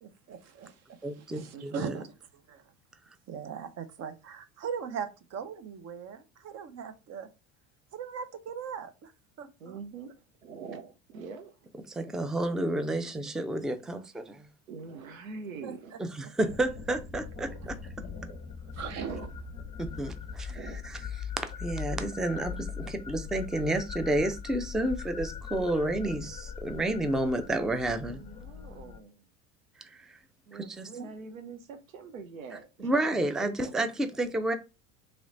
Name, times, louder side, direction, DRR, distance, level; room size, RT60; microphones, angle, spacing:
voice 1, 0.0-2.2 2.5-2.6 3.3-7.3 7.9-9.1 9.4-9.8 15.6-15.7 17.6-17.7 18.7-19.2 30.9-31.1, right 7 dB, 40° right, 0.8 m, -39 dB
voice 2, 1.0-2.0 11.9-14.4 16.1-17.8 19.8-20.6 21.6-28.2 29.9-30.2 30.5-30.9 32.8-34.5, right 1 dB, ahead, 0.4 m, -30 dB
voice 3, 1.5-1.9 9.6-10.1 10.4-11.6 14.7-16.0 18.6-19.3 20.5-20.8 27.9-29.3 30.5-33.7, right 5 dB, 85° right, 0.7 m, -44 dB
sound 1, 16.5-29.0, left 6 dB, 15° left, 0.9 m, -40 dB
3.1 x 3.1 x 3.8 m
hypercardioid pair, 75°, 40 cm